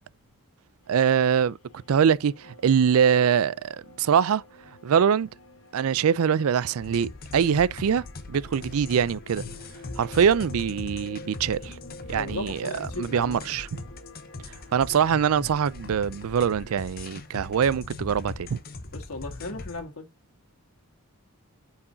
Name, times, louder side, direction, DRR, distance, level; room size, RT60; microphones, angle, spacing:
sound 1, 0.8-17.7, left 2 dB, 60° left, 1.3 m, -50 dB
voice 1, 0.9-1.6 1.9-4.4 4.8-5.3 5.7-9.4 10.0-11.8 12.1-13.8 14.7-18.6, right 7 dB, 75° right, 0.4 m, -23 dB
sound 2, 6.8-19.8, left 2 dB, 45° left, 0.8 m, -40 dB
voice 2, 12.1-13.4 18.9-20.1, left 2 dB, 85° left, 1.7 m, -36 dB
8.5 x 4.7 x 2.7 m
head